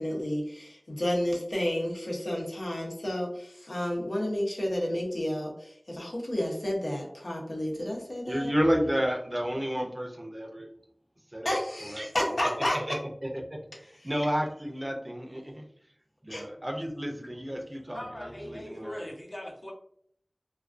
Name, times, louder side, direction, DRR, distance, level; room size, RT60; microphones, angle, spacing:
voice 1, 0.0-8.5 11.4-12.8 14.0-14.1 16.3-16.4, left 1 dB, 90° left, -3 dB, 0.7 m, -31 dB
voice 2, 8.3-10.7 11.3-11.5 11.9-12.1 12.4-13.6 14.0-15.6 16.2-19.1, equal, 30° right, 1 dB, 0.5 m, -31 dB
voice 3, 17.9-19.7, equal, 50° left, -1 dB, 0.7 m, -40 dB
2.3 x 2.2 x 2.4 m, 0.65 s
wide cardioid pair, 50°, 0 cm